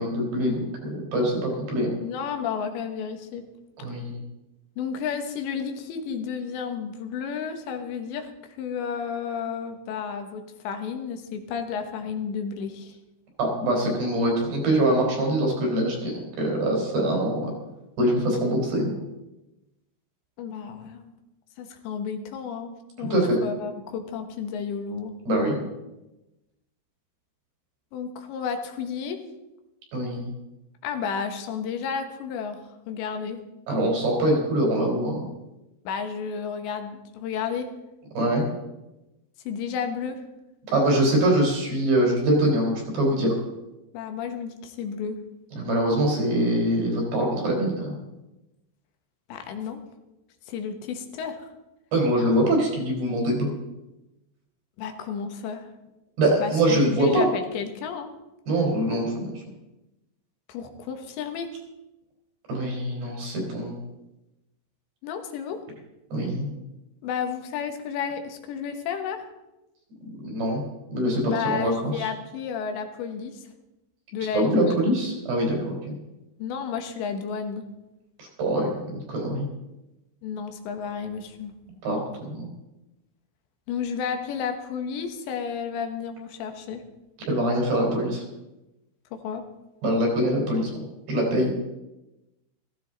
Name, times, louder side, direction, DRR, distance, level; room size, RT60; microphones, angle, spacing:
voice 1, 0.0-1.9 3.8-4.2 13.4-17.5 18.0-19.0 23.0-23.4 25.3-25.6 29.9-30.3 33.7-35.3 38.2-38.4 40.7-43.4 45.5-47.9 51.9-53.5 56.2-57.3 58.5-59.1 62.5-63.8 66.1-66.5 70.0-70.6 70.9-72.1 74.3-76.0 78.2-79.5 81.8-82.5 87.3-88.2 89.8-90.7 91.1-91.5, right 1 dB, 70° right, -1 dB, 5.9 m, -24 dB
voice 2, 2.0-3.4 4.8-8.3 8.6-13.0 20.4-21.1 21.6-25.1 27.9-29.2 30.8-32.6 32.9-33.4 35.9-37.7 39.5-40.2 43.9-45.2 49.3-49.8 50.5-51.4 54.8-55.6 56.4-58.1 60.5-61.5 65.0-65.6 67.0-69.2 71.2-73.4 74.1-74.8 76.4-77.7 80.2-81.5 83.7-86.8 89.1-89.4, left 6 dB, 85° left, 6 dB, 3.5 m, -32 dB
15.0 x 15.0 x 4.0 m, 0.99 s
omnidirectional pair, 5.0 m